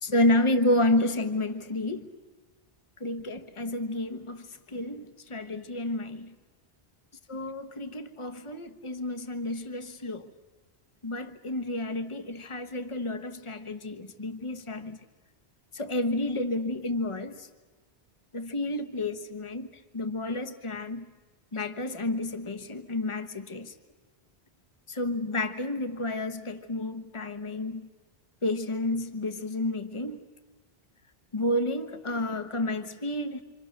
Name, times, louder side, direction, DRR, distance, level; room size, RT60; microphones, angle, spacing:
voice 1, 0.0-2.1 3.0-6.3 7.3-10.3 11.0-15.0 15.7-17.5 18.3-21.1 21.5-23.7 24.9-27.9 28.4-30.2 31.3-33.4, left 1 dB, 30° left, 8 dB, 1.2 m, -30 dB
27.0 x 27.0 x 6.6 m, 1.3 s
omnidirectional pair, 1.0 m